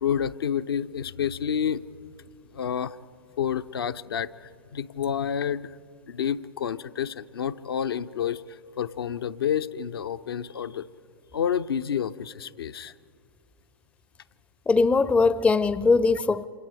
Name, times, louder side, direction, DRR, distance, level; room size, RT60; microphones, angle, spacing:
voice 1, 0.0-1.8 2.5-3.0 3.4-5.7 6.1-10.9 11.3-12.9, left 8 dB, 70° left, 10 dB, 0.8 m, -29 dB
voice 2, 14.7-16.4, left 4 dB, 10° left, 17 dB, 0.5 m, -20 dB
28.0 x 26.0 x 4.9 m, 2.1 s
figure-of-eight pair, 105°, 13 cm